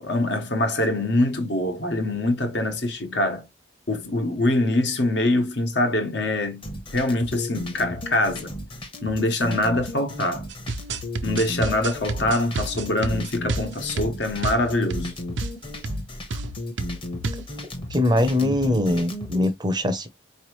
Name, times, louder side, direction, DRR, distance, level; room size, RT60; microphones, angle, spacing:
voice 1, 0.0-3.5 3.9-6.7 6.9-8.5 9.0-10.5 11.2-15.1, left 1 dB, 65° left, 1.3 m, -24 dB
sound 1, 6.6-19.5, left 1 dB, 30° left, 1.0 m, -35 dB
sound 2, 10.5-15.1 15.4-15.6 15.8-16.0 16.3-16.5 16.8-17.5, right 3 dB, 80° right, 0.6 m, -29 dB
voice 2, 17.9-20.1, left 1 dB, 20° right, 0.6 m, -22 dB
4.6 x 3.1 x 3.0 m
head